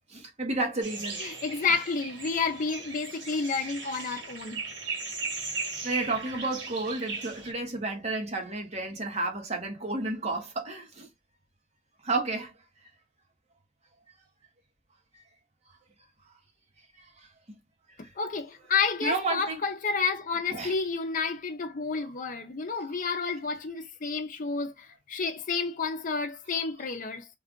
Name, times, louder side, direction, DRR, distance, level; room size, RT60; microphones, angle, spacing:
voice 1, 0.1-1.2 1.7-1.8 5.8-11.1 12.0-12.5 17.2-17.6 18.0-18.1 19.0-19.6 20.5-20.7, right 2 dB, 40° right, 1.2 m, -31 dB
sound 1, 0.8-7.5, right 4 dB, 90° right, 1.8 m, -37 dB
voice 2, 1.2-4.6 18.2-27.3, left 5 dB, 50° left, 0.6 m, -30 dB
3.3 x 2.4 x 3.6 m
head